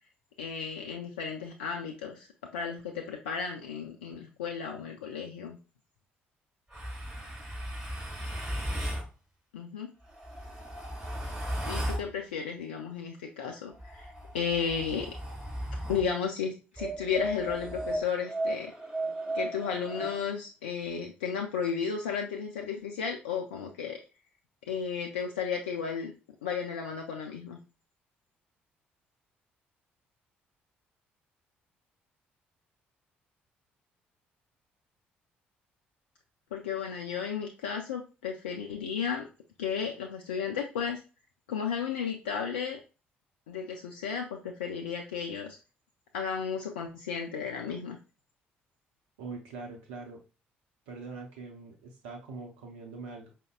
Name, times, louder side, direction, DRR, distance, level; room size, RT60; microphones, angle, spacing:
voice 1, 0.4-2.3 2.5-5.6 9.5-9.9 11.7-15.1 15.9-18.7 19.3-24.0 24.7-26.1 26.4-27.6 36.5-39.3 39.6-41.0 41.5-42.8 43.5-45.6 46.1-48.0, left 6 dB, 85° left, 1 dB, 0.4 m, -34 dB
sound 1, 6.7-9.1 10.0-12.1 13.7-16.1 16.8-20.2, right 1 dB, 10° right, 2.0 m, -35 dB
voice 2, 49.2-50.2 50.9-53.3, right 4 dB, 80° right, 1 dB, 0.6 m, -43 dB
5.1 x 2.1 x 2.3 m, 0.31 s
hypercardioid pair, 50°, 5 cm